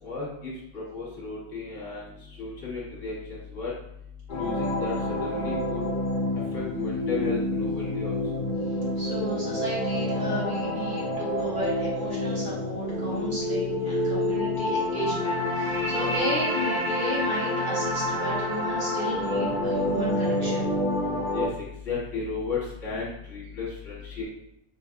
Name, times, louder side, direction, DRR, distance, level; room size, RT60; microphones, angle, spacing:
voice 1, 0.0-3.7 4.3-4.9 5.2-5.8 6.5-8.2 21.3-21.5 21.8-24.2, left 4 dB, 60° left, -5 dB, 1.6 m, -34 dB
sound 1, 4.3-21.5, left 1 dB, 35° left, 1.4 m, -28 dB
voice 2, 9.0-20.7, equal, 35° right, -7 dB, 1.4 m, -34 dB
4.1 x 3.8 x 2.5 m, 0.75 s
omnidirectional pair, 1.5 m